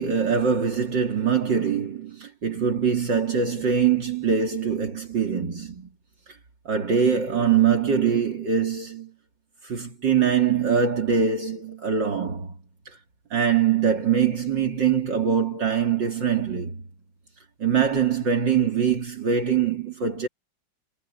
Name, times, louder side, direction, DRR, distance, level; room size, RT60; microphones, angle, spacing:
voice 1, 0.0-5.9 6.6-9.1 9.6-12.5 12.9-13.0 13.3-16.8 17.6-20.3, right 7 dB, 60° right, 3.2 m, -23 dB
omnidirectional pair, 2.2 m